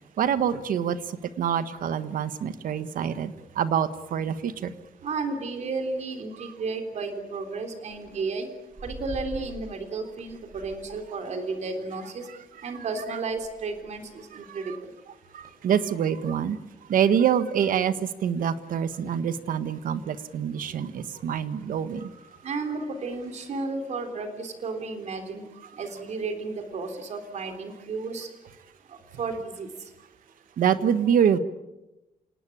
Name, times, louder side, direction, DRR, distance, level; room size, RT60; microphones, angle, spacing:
voice 1, 0.2-4.7 6.4-6.5 12.3-12.7 14.4-14.8 15.3-16.6 16.9-22.1 30.6-31.4, right 8 dB, 75° right, 12 dB, 1.5 m, -26 dB
sound 1, 4.7-23.6, right 1 dB, 25° right, 6.2 m, -51 dB
voice 2, 5.0-8.5 8.8-12.3 12.6-14.9 22.0-22.1 22.4-25.4 25.7-28.3 28.9-29.7, right 3 dB, 50° right, 7 dB, 3.5 m, -33 dB
27.5 x 19.0 x 8.6 m, 0.98 s
wide cardioid pair, 170°, 14 cm